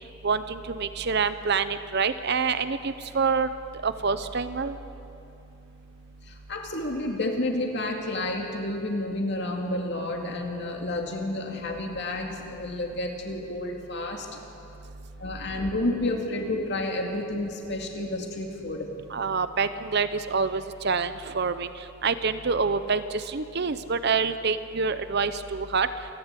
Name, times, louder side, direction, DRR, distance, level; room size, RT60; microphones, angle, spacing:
voice 1, 0.2-3.5 3.8-4.8 19.1-21.7 22.0-25.9, right 5 dB, 50° right, 12 dB, 0.7 m, -26 dB
voice 2, 6.3-14.3 15.2-18.9, left 1 dB, 50° left, 1 dB, 2.4 m, -30 dB
28.0 x 11.0 x 8.2 m, 2.8 s
head